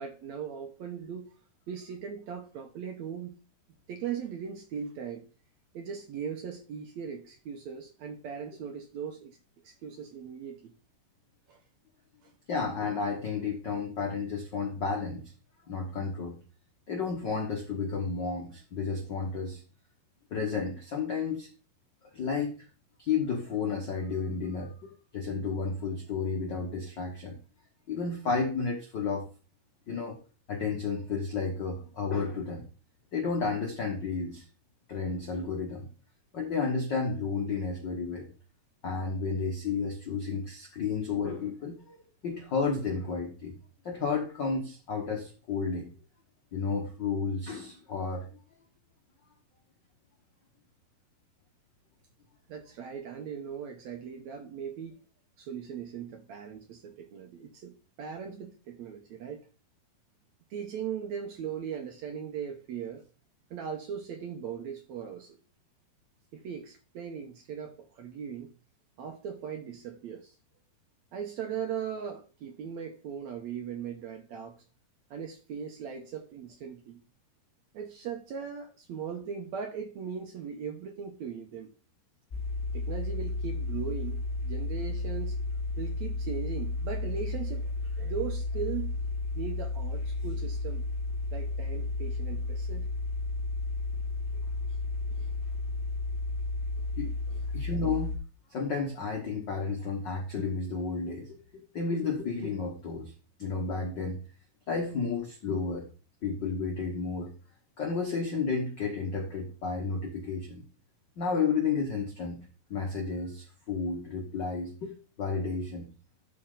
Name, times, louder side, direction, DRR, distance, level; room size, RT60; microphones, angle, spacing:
voice 1, 0.0-1.3 1.7-3.4 3.9-5.3 5.7-9.4 9.6-10.7 11.5-11.6 12.2-12.3 52.5-55.0 55.4-59.5 60.5-63.1 63.5-65.4 66.3-68.5 69.0-70.4 71.1-74.6 75.1-77.0 77.7-81.7 82.7-85.4 85.8-88.9 89.4-90.8 91.3-92.9 94.3-94.4 94.7-94.8 95.1-95.3 96.8-96.9 97.3-97.5, right 7 dB, 70° right, 1.8 m, -39 dB
voice 2, 12.5-15.3 15.7-16.4 16.9-19.6 20.3-21.5 22.1-22.7 23.0-27.4 27.9-29.3 29.9-30.2 30.5-32.7 33.1-34.4 34.9-35.9 36.3-38.3 38.8-42.0 42.2-43.5 43.8-45.9 46.5-48.3 97.0-97.1 97.5-98.2 98.5-101.4 101.7-103.1 103.4-104.2 104.7-105.9 106.2-107.3 107.8-110.6 111.2-112.4 112.7-115.9, left 4 dB, 90° left, 0.9 m, -32 dB
sound 1, 82.3-98.2, left 2 dB, 25° left, 4.1 m, -33 dB
12.0 x 4.4 x 3.8 m
omnidirectional pair, 4.0 m